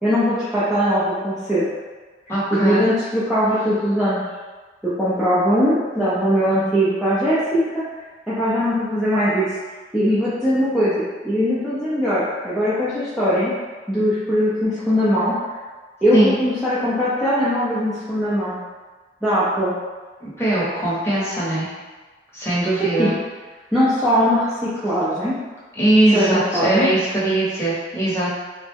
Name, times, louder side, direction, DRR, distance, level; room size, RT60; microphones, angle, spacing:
voice 1, 0.0-1.6 2.5-4.2 5.0-7.8 8.3-9.6 9.9-13.5 13.9-15.3 16.0-18.6 19.2-19.7 22.8-23.1 23.7-25.3 26.1-26.3 26.5-26.9, equal, ahead, -13 dB, 0.6 m, -20 dB
voice 2, 2.3-2.8 16.1-16.3 20.2-21.7 22.3-23.1 25.8-28.3, right 1 dB, 15° left, -8 dB, 0.9 m, -20 dB
3.4 x 2.1 x 3.4 m, 1.3 s
head